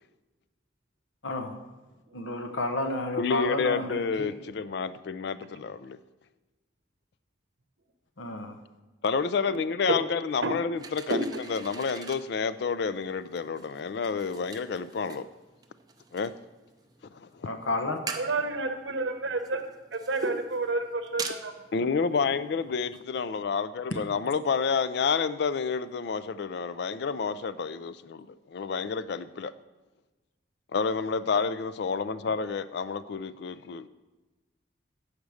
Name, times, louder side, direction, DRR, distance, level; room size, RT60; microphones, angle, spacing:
voice 1, 1.2-1.5 2.1-4.3 8.2-8.6 17.4-18.0, left 2 dB, 85° left, 6 dB, 0.9 m, -31 dB
voice 2, 3.2-6.0 9.0-15.3 16.1-16.3 17.2-17.3 21.7-29.5 30.7-33.9, left 5 dB, 60° left, 15 dB, 0.4 m, -29 dB
sound 1, 10.8-23.0, right 5 dB, 20° right, 0.5 m, -45 dB
voice 3, 11.1-11.4 18.2-21.5 22.2-22.3 32.2-32.5, right 2 dB, 70° right, 7 dB, 0.8 m, -30 dB
8.3 x 5.1 x 6.3 m, 1.1 s
head